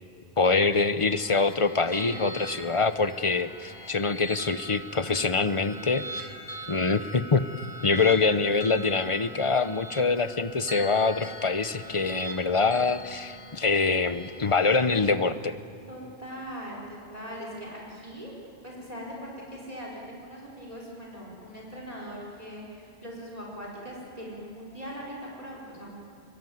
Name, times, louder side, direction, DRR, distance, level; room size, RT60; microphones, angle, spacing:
voice 1, 0.4-6.3 6.7-7.4 7.8-15.6, left 4 dB, 35° left, 12 dB, 0.8 m, -25 dB
sound 1, 1.0-15.1, equal, 80° left, 5.1 m, -42 dB
voice 2, 15.9-18.3 18.6-26.0, equal, 35° right, -3 dB, 4.8 m, -40 dB
25.0 x 23.5 x 9.4 m, 2.6 s
omnidirectional pair, 1.0 m